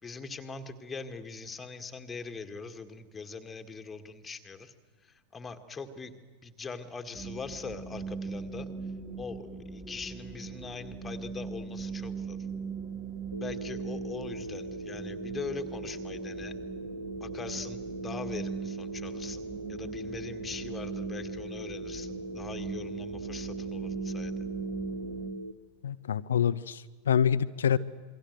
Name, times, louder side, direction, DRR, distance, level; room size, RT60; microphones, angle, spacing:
voice 1, 0.0-4.7 5.0-6.1 6.4-8.7 9.2-12.4 13.4-16.5 17.2-24.3, left 4 dB, 15° left, 7 dB, 2.0 m, -42 dB
sound 1, 7.1-25.3, right 5 dB, 15° right, 3.1 m, -40 dB
Telephone, 13.3-25.5, right 2 dB, 90° left, 0.9 m, -40 dB
voice 2, 25.8-27.8, left 8 dB, 65° left, 14 dB, 0.7 m, -26 dB
28.0 x 22.5 x 8.1 m, 1.5 s
figure-of-eight pair, 90°, 0 cm